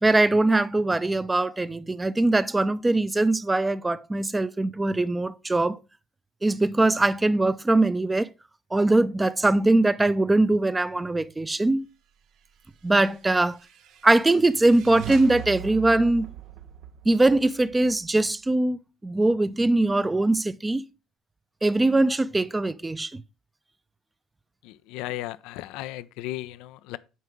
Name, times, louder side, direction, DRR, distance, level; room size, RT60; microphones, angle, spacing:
voice 1, 0.0-5.8 6.4-8.3 8.7-11.9 12.8-13.6 14.0-16.3 17.0-20.9 21.6-23.2, right 2 dB, 15° right, 0.6 m, -22 dB
sound 1, 13.0-18.6, right 10 dB, 60° right, 0.7 m, -41 dB
voice 2, 24.6-27.0, left 15 dB, 70° left, 0.4 m, -35 dB
9.3 x 4.5 x 3.6 m
hypercardioid pair, 55°, 0 cm